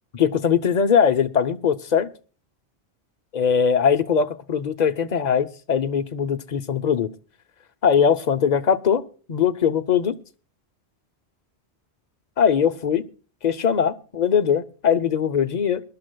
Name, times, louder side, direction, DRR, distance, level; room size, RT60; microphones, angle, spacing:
voice 1, 0.1-2.1 3.3-7.1 7.8-9.0 9.3-10.2 12.4-13.0 13.4-15.8, left 7 dB, 45° left, 10 dB, 0.7 m, -21 dB
23.5 x 11.5 x 2.2 m, 0.37 s
omnidirectional pair, 1.1 m